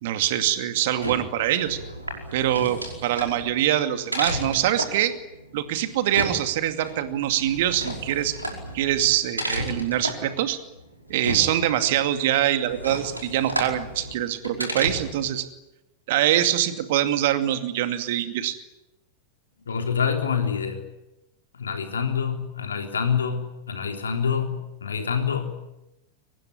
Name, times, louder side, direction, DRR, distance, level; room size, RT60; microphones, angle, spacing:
voice 1, 0.0-1.8 2.3-5.1 5.5-8.4 8.7-10.6 11.1-15.5 16.1-18.6, right 12 dB, 55° right, 9 dB, 2.4 m, -24 dB
sound 1, 0.8-15.3, equal, 85° right, 5.1 m, -33 dB
voice 2, 19.7-20.8 21.5-25.5, left 6 dB, 70° left, 4 dB, 3.7 m, -26 dB
24.5 x 20.0 x 9.9 m, 0.94 s
figure-of-eight pair, 90°, 0 cm